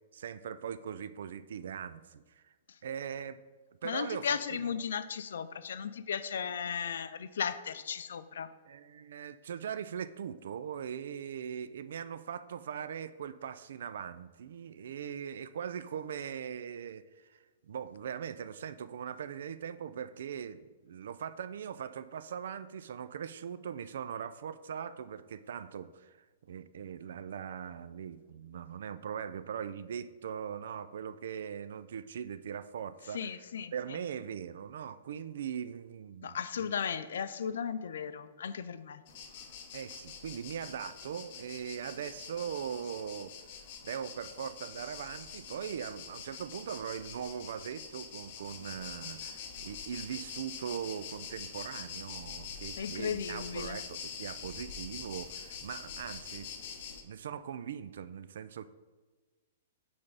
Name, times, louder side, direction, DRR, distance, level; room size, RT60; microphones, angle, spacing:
voice 1, 0.1-2.5 2.8-3.4 3.8-4.4 8.7-26.2 26.4-33.5 33.7-36.8 39.7-43.3 43.8-56.5 57.0-58.7, right 8 dB, 70° right, 14 dB, 0.3 m, -40 dB
voice 2, 3.8-8.5 33.1-34.0 36.2-39.0 52.8-53.8, left 7 dB, 80° left, 13 dB, 0.4 m, -36 dB
sound 1, 39.1-57.0, left 6 dB, 45° left, 0.8 m, -45 dB
8.8 x 3.4 x 3.9 m, 1.3 s
hypercardioid pair, 160°, 0 cm